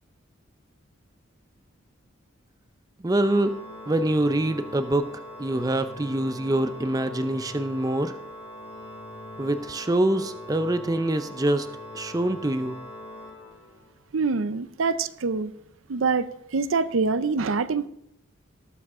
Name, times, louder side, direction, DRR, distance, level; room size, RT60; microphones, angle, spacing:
voice 1, 3.0-3.6 3.9-5.1 5.4-8.1 9.4-11.7 11.9-12.8, right 1 dB, 20° right, 11 dB, 0.4 m, -25 dB
Organ, 3.1-14.0, equal, 55° left, 2.6 m, -42 dB
voice 2, 14.1-15.5 15.9-17.9, right 4 dB, 80° right, 14 dB, 0.6 m, -25 dB
18.5 x 7.1 x 3.7 m, 0.76 s
head